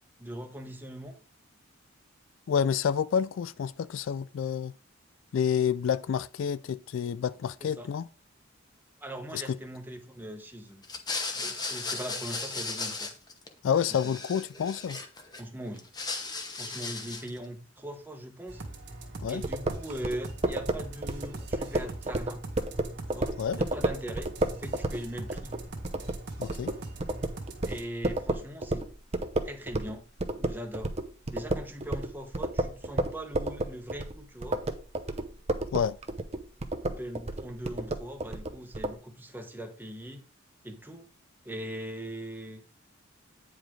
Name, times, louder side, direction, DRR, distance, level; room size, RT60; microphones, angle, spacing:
voice 1, 0.2-1.1 7.6-7.9 9.0-10.8 11.3-13.1 15.4-15.9 16.6-18.6 19.3-22.4 23.1-25.5 27.6-28.9 29.4-30.9 31.3-34.6 36.9-40.2 40.6-41.1 41.4-42.6, right 1 dB, 10° right, 1.1 m, -40 dB
voice 2, 2.5-4.7 5.3-8.1 9.3-9.6 13.6-15.0 19.2-19.4 23.4-23.6 26.4-26.8 35.7-36.0, left 7 dB, 65° left, 0.3 m, -29 dB
sound 1, 10.8-13.5 13.7-15.4 15.8-17.4, left 4 dB, 20° left, 0.9 m, -36 dB
sound 2, 18.5-27.8, right 2 dB, 55° right, 1.5 m, -42 dB
sound 3, 19.4-29.9 30.2-38.9, right 2 dB, 30° right, 0.7 m, -31 dB
9.2 x 5.0 x 3.7 m
head